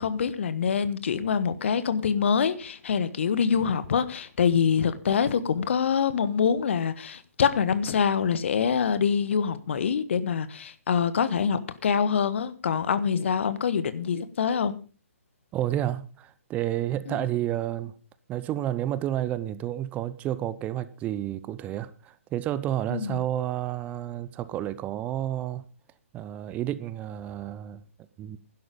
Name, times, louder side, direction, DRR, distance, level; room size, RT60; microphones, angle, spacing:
voice 1, 0.0-14.8 17.1-17.3 22.9-23.2, left 7 dB, 55° left, 1.3 m, -25 dB
voice 2, 15.5-17.9 18.3-25.6 26.1-27.8 28.2-28.4, right 12 dB, 20° right, 0.7 m, -30 dB
11.5 x 11.5 x 5.2 m
figure-of-eight pair, 130°, 8 cm